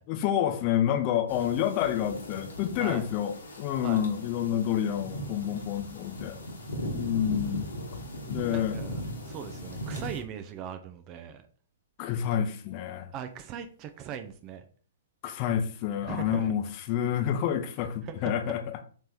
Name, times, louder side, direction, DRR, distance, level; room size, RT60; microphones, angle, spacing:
voice 1, 0.1-6.4 6.9-7.7 8.3-8.8 12.0-13.1 15.2-18.6, left 10 dB, 35° left, 0.6 m, -28 dB
sound 1, 1.3-10.2, equal, 65° left, 1.1 m, -38 dB
voice 2, 8.5-9.0 9.3-11.4 13.1-14.6 16.0-16.5 18.0-18.3, right 8 dB, 30° right, 0.4 m, -39 dB
3.3 x 3.2 x 4.1 m
figure-of-eight pair, 115°, 0 cm